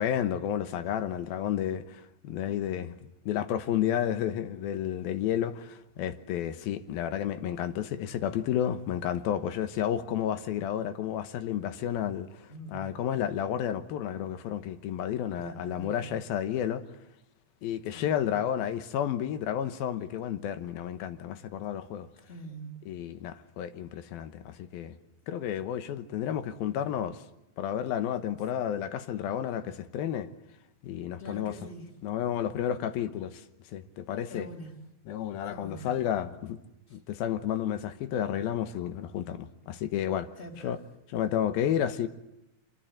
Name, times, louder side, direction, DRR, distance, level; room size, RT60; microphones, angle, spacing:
voice 1, 0.0-16.8 17.6-22.1 22.9-25.0 25.3-27.2 27.6-30.3 30.8-31.6 32.0-34.5 35.1-36.6 36.9-40.3 40.6-40.8 41.1-42.1, left 10 dB, 90° left, 3.1 m, -31 dB
voice 2, 12.5-13.0 15.4-16.2 17.9-18.1 22.3-22.9 31.2-31.9 34.3-34.8 35.5-35.9 36.9-37.0 40.4-40.8, right 1 dB, 15° left, 3.5 m, -44 dB
26.0 x 24.0 x 7.8 m
omnidirectional pair, 4.2 m